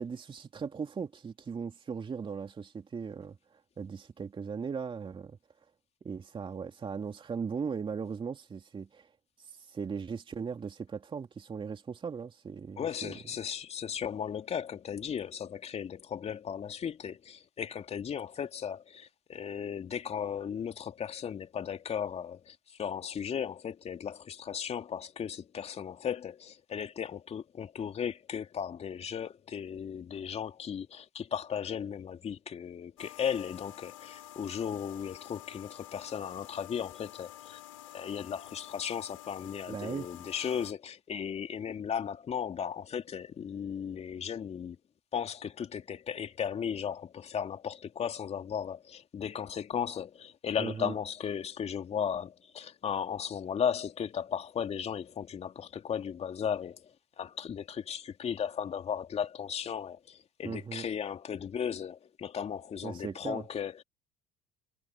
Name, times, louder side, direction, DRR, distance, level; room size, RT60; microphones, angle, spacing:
voice 1, 0.0-5.4 6.0-9.1 9.4-13.1 39.7-40.1 50.6-50.9 60.4-60.9 62.8-63.5, right 6 dB, 30° right, 2.8 m, -38 dB
voice 2, 12.8-37.6 37.9-44.8 45.1-56.8 57.2-63.8, left 8 dB, 40° left, 2.5 m, -36 dB
sound 1, 33.0-40.7, left 14 dB, 85° left, 3.2 m, -49 dB
hypercardioid pair, 65°, 17 cm